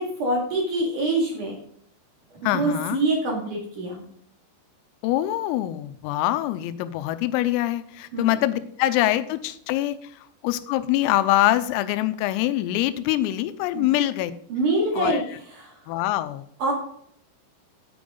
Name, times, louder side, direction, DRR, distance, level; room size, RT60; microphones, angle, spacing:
voice 1, 0.0-1.5 2.5-4.0 8.1-8.3 13.7-13.9 14.5-15.2 15.5-15.8 16.6-16.7, right 2 dB, 50° right, -1 dB, 3.0 m, -25 dB
voice 2, 2.4-3.0 5.0-10.1 10.4-14.3 14.9-15.2 15.9-16.5, left 14 dB, 90° left, 12 dB, 3.4 m, -24 dB
9.9 x 8.7 x 3.9 m, 0.65 s
omnidirectional pair, 5.9 m